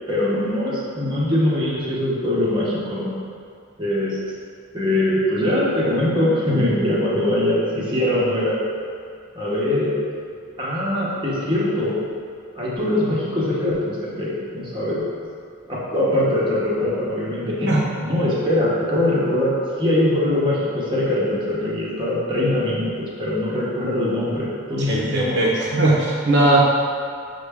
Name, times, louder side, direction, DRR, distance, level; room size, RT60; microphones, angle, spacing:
voice 1, 0.1-3.2 3.8-4.2 4.7-8.6 9.3-9.9 10.6-12.0 12.5-15.0 15.6-25.4, left 1 dB, 25° right, -7 dB, 0.8 m, -22 dB
voice 2, 24.9-26.6, right 2 dB, 60° right, -5 dB, 0.6 m, -18 dB
5.8 x 2.2 x 3.4 m, 2.3 s
head